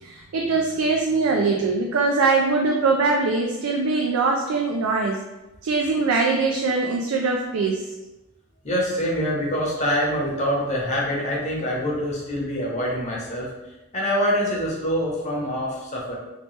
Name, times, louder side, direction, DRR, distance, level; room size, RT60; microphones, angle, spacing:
voice 1, 0.0-5.2 5.6-7.9, right 3 dB, 80° right, 1 dB, 0.4 m, -22 dB
voice 2, 8.6-13.5 13.9-16.2, equal, 35° left, -3 dB, 0.9 m, -25 dB
3.0 x 2.9 x 3.1 m, 1.0 s
head